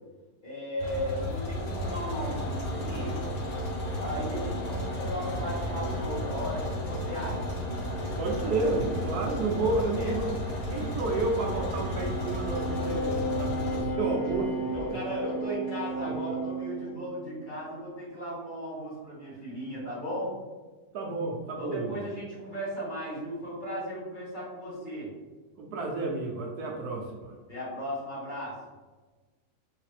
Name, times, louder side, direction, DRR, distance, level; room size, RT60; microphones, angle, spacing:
voice 1, 0.4-3.2 4.0-7.4 9.6-10.2 14.7-20.4 21.6-25.1 27.5-28.6, equal, 30° left, -9 dB, 1.8 m, -36 dB
sound 1, 0.8-13.8, left 1 dB, 85° left, 1.7 m, -34 dB
sound 2, 1.3-17.5, right 1 dB, 55° left, 1.8 m, -37 dB
sound 3, 8.2-16.2, equal, 55° right, 0.8 m, -47 dB
voice 2, 8.2-10.4 10.7-15.0 16.1-16.2 20.9-22.1 25.6-27.3, right 3 dB, 70° right, 0 dB, 1.2 m, -31 dB
4.1 x 3.7 x 3.2 m, 1.3 s
omnidirectional pair, 1.7 m